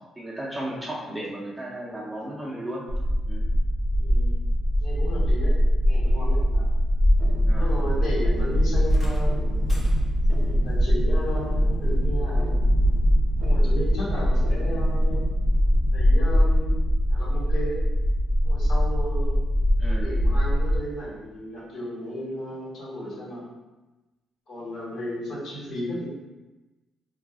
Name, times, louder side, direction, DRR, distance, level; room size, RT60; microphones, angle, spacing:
voice 1, 0.2-2.8 3.3-3.4 7.5-7.7 14.6-14.8 19.8-20.1, right 1 dB, 10° right, -5 dB, 0.7 m, -35 dB
sound 1, 2.9-20.8, equal, 85° left, 0.8 m, -22 dB
voice 2, 4.0-4.4 4.8-5.5 5.8-6.7 7.6-9.5 10.3-12.5 13.4-15.3 15.9-16.7 17.1-17.8 18.4-19.4 19.9-23.4 24.5-26.1, equal, 65° left, -7 dB, 1.3 m, -34 dB
sound 2, 7.1-16.6, right 1 dB, 70° right, 0.3 m, -34 dB
sound 3, 8.9-10.4 11.9-12.0 12.9-13.0, equal, 30° left, 0.6 m, -44 dB
2.4 x 2.3 x 3.5 m, 1.1 s
cardioid pair, 90°, 0 cm